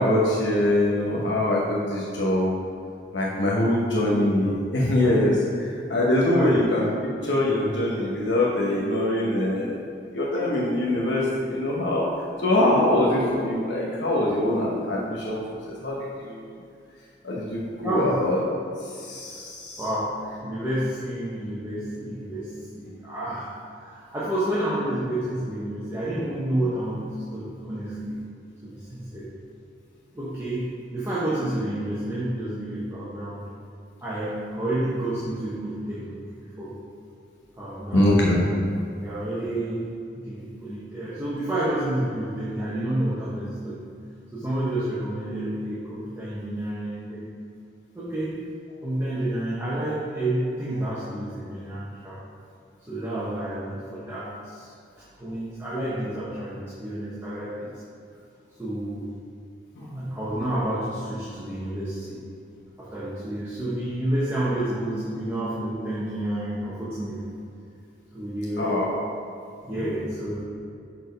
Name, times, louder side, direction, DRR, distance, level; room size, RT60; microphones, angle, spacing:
voice 1, 0.0-2.5 3.1-6.9 7.2-9.7 10.1-12.1 12.4-16.4 17.2-18.4 19.0-19.8 37.9-38.4 68.6-69.0, left 1 dB, 80° left, -5 dB, 1.0 m, -23 dB
voice 2, 17.8-18.3 19.8-23.5 23.8-28.2 28.6-29.3 30.1-33.4 34.0-36.8 37.6-38.4 39.0-43.8 44.3-47.3 47.9-48.4 48.8-52.2 52.9-54.7 55.2-57.7 58.6-59.1 59.8-62.2 62.8-67.3 68.1-68.9 69.6-70.4, right 1 dB, 15° right, -10 dB, 1.1 m, -30 dB
6.4 x 4.5 x 5.2 m, 2.5 s
head